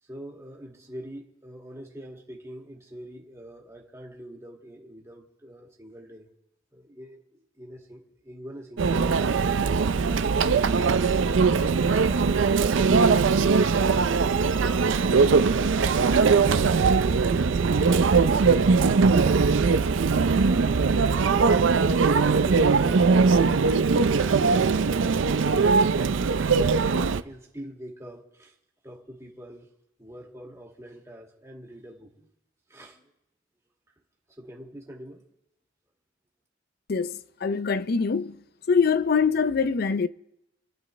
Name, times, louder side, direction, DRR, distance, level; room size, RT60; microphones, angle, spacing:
voice 1, 0.0-6.3 6.7-9.9 22.1-28.6 28.8-29.7 30.0-32.3 32.7-33.1 34.4-35.2, equal, 15° right, 2.0 m, -45 dB
Conversation / Chatter / Crowd, 8.8-27.2, right 4 dB, 80° right, 0.5 m, -21 dB
sound 1, 9.7-16.6, left 1 dB, 20° left, 1.6 m, -46 dB
voice 2, 36.9-38.4 38.7-40.1, left 5 dB, 55° left, 0.5 m, -24 dB
28.0 x 11.0 x 3.2 m
head